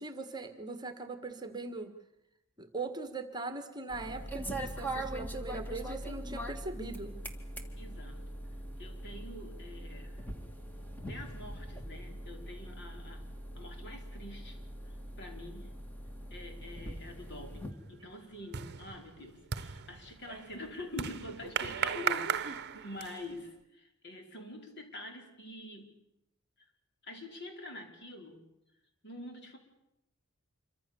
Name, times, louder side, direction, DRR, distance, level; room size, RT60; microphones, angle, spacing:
voice 1, 0.0-1.9 2.6-7.2, right 3 dB, 20° right, 8 dB, 1.7 m, -40 dB
sound 1, 3.9-17.7, right 1 dB, 10° left, 2.4 m, -42 dB
voice 2, 7.8-8.2 8.8-10.3 11.1-13.2 13.6-15.7 16.3-25.9 27.0-28.4 29.0-29.6, left 1 dB, 55° left, 3 dB, 4.9 m, -46 dB
sound 2, 16.9-17.3 17.6-23.4, right 7 dB, 50° right, 0.9 m, -37 dB
27.0 x 24.5 x 7.1 m, 0.87 s
head